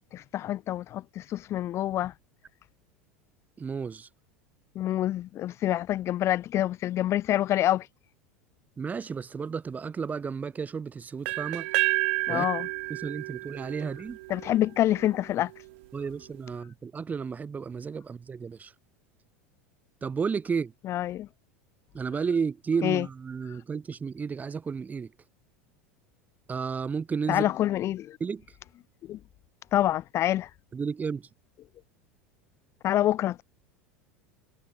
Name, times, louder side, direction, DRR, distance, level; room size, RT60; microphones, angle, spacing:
voice 1, 0.1-2.1 4.8-7.9 12.3-12.7 14.3-15.5 20.8-21.3 22.8-23.1 27.3-28.2 29.1-29.2 29.7-30.5 32.8-33.4, left 13 dB, 40° left, 0.6 m, -27 dB
voice 2, 3.6-4.1 8.8-11.7 12.3-12.5 12.9-14.2 15.9-18.7 20.0-20.7 21.9-25.1 26.5-27.5 28.2-28.4 30.7-31.3, right 5 dB, 20° right, 1.5 m, -32 dB
sound 1, 11.2-15.1, right 22 dB, 60° right, 1.0 m, -30 dB
figure-of-eight pair, 80°, 7 cm